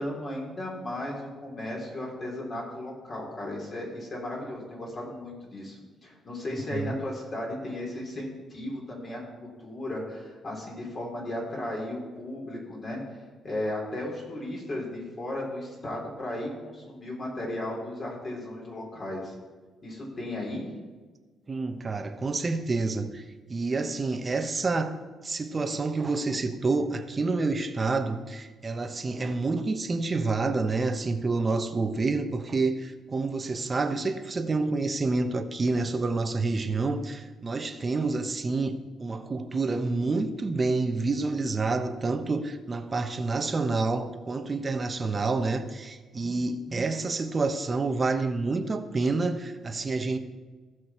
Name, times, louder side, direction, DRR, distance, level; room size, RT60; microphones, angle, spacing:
voice 1, 0.0-9.2 9.6-13.0 13.4-19.3 19.8-20.7, left 1 dB, 40° left, 3.8 m, -35 dB
voice 2, 21.5-23.2 23.5-25.0 25.2-50.2, right 3 dB, 30° right, 0.9 m, -28 dB
15.0 x 6.2 x 4.4 m
cardioid pair, 90°, 0 cm